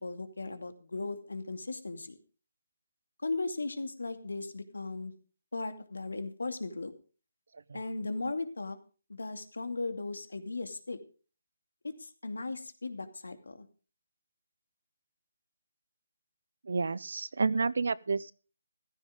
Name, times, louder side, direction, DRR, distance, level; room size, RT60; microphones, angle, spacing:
voice 1, 0.0-2.2 3.2-5.1 5.5-6.9 7.7-8.8 9.1-11.0 11.8-13.7, left 3 dB, 80° left, 8 dB, 2.5 m, -37 dB
voice 2, 16.6-18.3, right 4 dB, 70° right, 20 dB, 0.7 m, -30 dB
14.5 x 14.0 x 3.8 m, 0.37 s
figure-of-eight pair, 155°, 0 cm